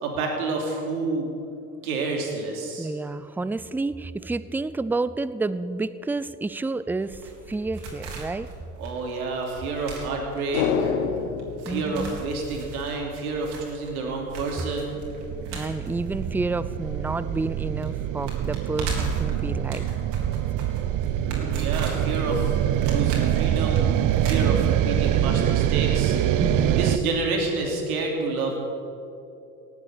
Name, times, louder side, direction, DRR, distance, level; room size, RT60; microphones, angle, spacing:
voice 1, 0.0-1.3 1.8-2.9 8.8-10.9 11.6-15.0 21.2-22.6 22.9-23.9 24.2-28.6, right 3 dB, 80° right, 1 dB, 3.0 m, -29 dB
voice 2, 2.8-8.5 11.7-12.2 15.5-19.9 26.4-27.0, right 3 dB, 5° right, 16 dB, 0.4 m, -30 dB
sound 1, 7.0-17.1 17.4-17.5 17.8-25.1 25.3-25.4, right 3 dB, 65° right, 3.8 m, -37 dB
sound 2, 10.5-13.0 13.3-13.4, left 6 dB, 70° left, 1.4 m, -28 dB
sound 3, 14.4-27.0, right 11 dB, 45° right, 0.8 m, -25 dB
18.5 x 8.3 x 8.4 m, 2.8 s
hypercardioid pair, 70°, 44 cm